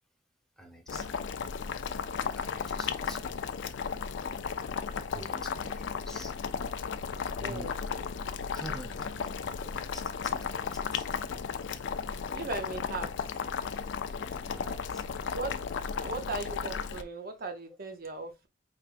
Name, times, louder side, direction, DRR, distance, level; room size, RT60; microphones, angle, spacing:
voice 1, 0.6-1.3 2.3-3.3 5.1-6.3 7.4-7.7 8.5-11.1 14.4-15.0, right 1 dB, 5° left, 0.9 m, -47 dB
Boiling, 0.9-17.0, left 6 dB, 80° left, 0.4 m, -35 dB
voice 2, 7.4-7.8 12.3-13.1 15.3-15.6 16.0-18.5, right 3 dB, 55° right, 0.6 m, -37 dB
4.5 x 3.4 x 2.4 m
head